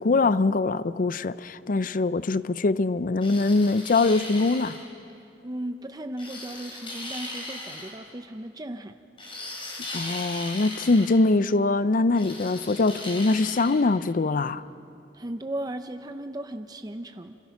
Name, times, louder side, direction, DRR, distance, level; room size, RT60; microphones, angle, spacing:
voice 1, 0.0-4.8 9.9-14.6, left 3 dB, 50° left, 0.5 m, -23 dB
sound 1, 3.2-4.9 6.2-8.0 9.2-11.2 12.1-13.8, left 2 dB, 30° left, 4.5 m, -38 dB
voice 2, 5.4-9.0 15.1-17.4, right 1 dB, 20° right, 0.7 m, -36 dB
27.5 x 26.0 x 5.9 m
head